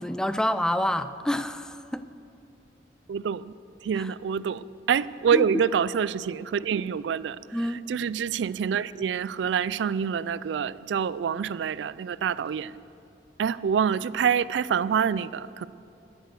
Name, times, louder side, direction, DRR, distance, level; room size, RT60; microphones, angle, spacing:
voice 1, 0.0-2.0 4.0-4.1 5.3-5.6 7.5-7.8, left 1 dB, 5° left, 12 dB, 0.3 m, -28 dB
voice 2, 3.1-3.5 3.8-7.4 7.9-12.7 13.4-15.7, right 7 dB, 75° right, 19 dB, 0.3 m, -26 dB
13.0 x 9.1 x 6.4 m, 2.7 s
head